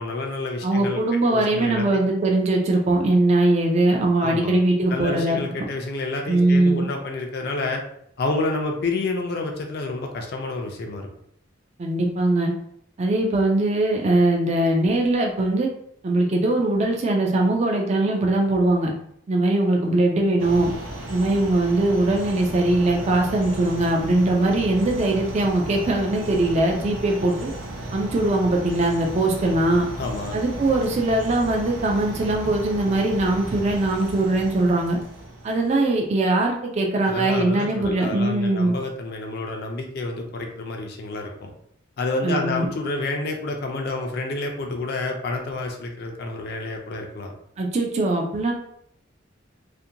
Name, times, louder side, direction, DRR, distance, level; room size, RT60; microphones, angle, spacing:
voice 1, 0.0-1.0 1.3-2.1 4.2-4.5 4.9-7.8 8.2-11.1 30.0-30.4 37.1-41.5 42.0-47.3, left 2 dB, 50° left, 2 dB, 0.4 m, -29 dB
voice 2, 0.6-5.4 6.3-6.8 11.8-12.5 13.0-15.7 16.0-18.9 19.3-20.7 21.1-27.5 27.9-29.9 30.3-35.0 35.4-38.7 42.2-42.7 47.6-48.5, right 2 dB, 35° right, 1 dB, 0.3 m, -21 dB
sound 1, 20.4-35.9, right 1 dB, 80° right, 0.6 m, -35 dB
2.5 x 2.1 x 2.7 m, 0.71 s
head